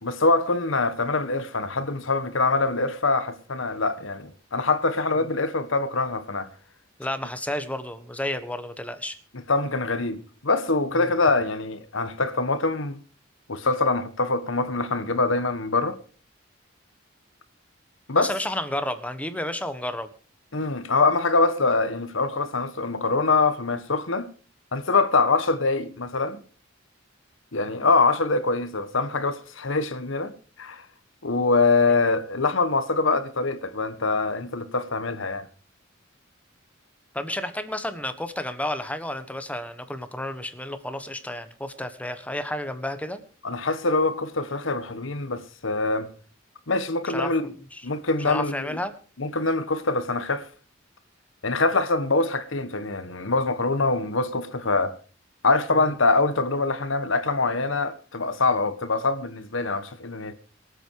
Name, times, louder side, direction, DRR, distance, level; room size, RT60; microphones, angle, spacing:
voice 1, 0.0-6.5 9.5-13.0 13.5-16.0 18.1-18.3 20.5-24.3 24.7-26.4 27.5-30.3 30.6-30.8 31.2-35.5 43.4-46.1 46.7-47.5 47.8-48.8 49.2-50.5 51.4-54.9 55.4-60.3, left 3 dB, 75° left, 1.5 m, -24 dB
voice 2, 7.0-9.2 18.1-20.1 37.1-43.2 47.1-47.3 47.7-47.9 48.2-48.9 55.7-55.9, left 1 dB, 5° left, 1.3 m, -31 dB
23.5 x 8.5 x 4.8 m
head